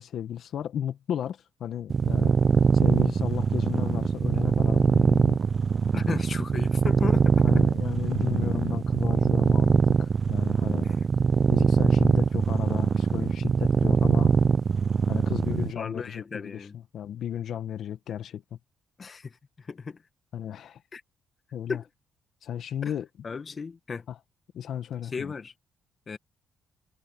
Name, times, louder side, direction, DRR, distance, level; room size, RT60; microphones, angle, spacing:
voice 1, 0.0-2.4 2.7-5.4 7.4-11.0 11.5-14.4 15.1-18.6 20.3-20.8 21.5-21.8 22.4-23.1 24.1-24.2 24.5-25.4, left 10 dB, 70° left, 1.3 m, -34 dB
sound 1, 1.9-15.7, right 6 dB, 45° right, 0.5 m, -23 dB
voice 2, 5.9-7.5 10.8-10.9 15.5-16.8 19.0-20.0 20.9-21.0 21.7-21.8 22.8-22.9 23.2-24.0 25.1-25.5 26.1-26.2, left 5 dB, 40° left, 1.6 m, -35 dB
cardioid pair, 90°, 0 cm